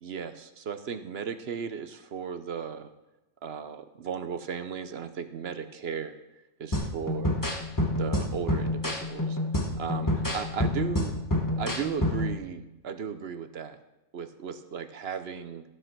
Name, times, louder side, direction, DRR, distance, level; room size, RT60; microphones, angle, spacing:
voice 1, 0.0-2.9 3.4-6.2 6.6-7.4 7.9-9.4 9.8-11.1 11.6-13.8 14.1-15.6, right 7 dB, 55° right, 10 dB, 0.9 m, -36 dB
sound 1, 6.7-12.4, left 1 dB, 15° left, 1.1 m, -28 dB
13.5 x 7.8 x 6.0 m, 0.96 s
omnidirectional pair, 1.5 m